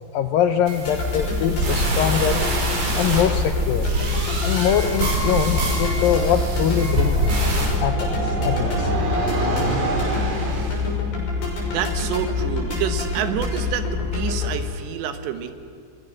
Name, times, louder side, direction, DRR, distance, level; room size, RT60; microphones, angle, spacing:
voice 1, 0.1-2.5 3.0-3.9 4.4-7.2 7.8-8.9, left 9 dB, 80° left, 8 dB, 2.1 m, -23 dB
sound 1, 0.7-7.8, right 2 dB, 65° right, 6.7 m, -25 dB
sound 2, 0.9-14.6, left 4 dB, 55° left, 7.8 m, -26 dB
sound 3, 5.6-10.9, right 2 dB, 40° right, 4.0 m, -27 dB
voice 2, 11.7-15.5, right 9 dB, 80° right, 8 dB, 3.6 m, -28 dB
29.5 x 23.0 x 6.5 m, 2.5 s
omnidirectional pair, 5.0 m